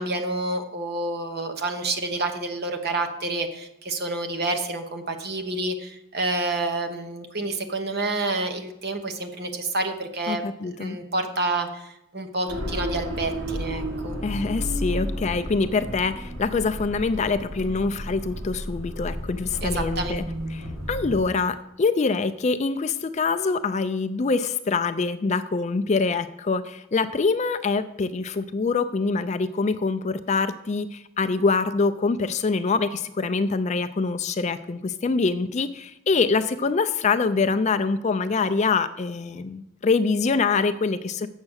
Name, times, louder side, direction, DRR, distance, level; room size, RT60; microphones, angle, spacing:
voice 1, 0.0-10.4 10.8-14.2 19.6-20.1, right 2 dB, 50° right, 6 dB, 1.0 m, -28 dB
voice 2, 10.3-11.0 14.2-20.2 20.5-41.3, left 4 dB, 30° left, 11 dB, 0.3 m, -25 dB
sound 1, 12.5-21.2, equal, 70° right, 2.1 m, -32 dB
7.5 x 7.2 x 6.4 m, 0.83 s
head